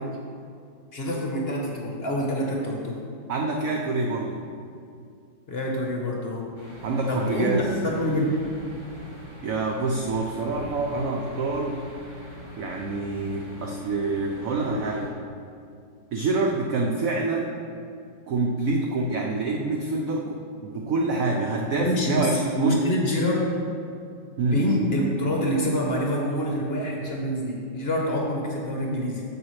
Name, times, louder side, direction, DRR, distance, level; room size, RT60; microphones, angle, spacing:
voice 1, 0.9-3.0 5.5-6.5 7.1-8.4 21.8-23.5 24.5-29.2, equal, 40° left, -1 dB, 0.9 m, -26 dB
voice 2, 3.3-4.4 6.8-7.7 9.4-11.8 12.6-15.1 16.1-17.6 18.3-22.8 24.4-24.6, right 3 dB, 70° right, 0 dB, 0.8 m, -26 dB
sound 1, 6.6-15.1, left 1 dB, 15° right, 1.2 m, -43 dB
9.9 x 7.2 x 3.2 m, 2.4 s
omnidirectional pair, 2.1 m